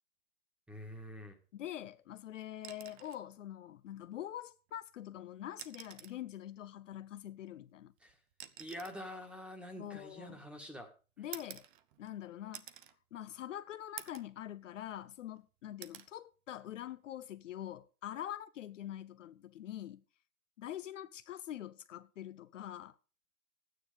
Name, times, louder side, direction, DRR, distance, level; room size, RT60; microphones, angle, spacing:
voice 1, 0.7-1.4 8.0-8.2 8.6-10.9, equal, 5° right, 1.6 m, -46 dB
voice 2, 1.5-7.9 9.8-10.4 11.2-11.7 12.0-12.7 13.1-20.0 20.6-23.0, left 12 dB, 60° left, 0.7 m, -45 dB
sound 1, 2.6-3.3 4.7-4.8 5.5-6.3 7.4-10.5 11.3-12.2 12.5-13.0 13.4-13.5 14.0-14.4 14.8-15.4 15.8-16.1 17.6-17.8, right 12 dB, 35° right, 0.9 m, -50 dB
12.5 x 9.5 x 5.1 m
hypercardioid pair, 140°, 43 cm